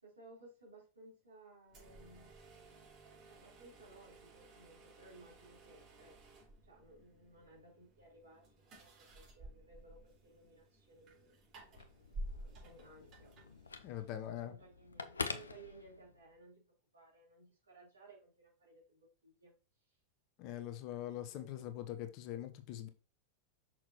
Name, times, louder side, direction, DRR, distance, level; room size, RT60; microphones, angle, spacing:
voice 1, 0.0-2.4 3.3-6.2 6.6-11.4 12.2-13.3 14.0-16.6 16.9-19.5 19.9-20.0 21.2-21.7, right 2 dB, 75° right, 3.6 m, -60 dB
sound 1, 1.7-14.2, right 1 dB, 35° right, 4.0 m, -53 dB
Telephone, 11.6-16.4, left 4 dB, 75° left, 0.5 m, -46 dB
voice 2, 13.8-14.5 20.4-22.9, left 11 dB, 40° left, 0.8 m, -43 dB
6.1 x 5.9 x 3.0 m
figure-of-eight pair, 90°, 0 cm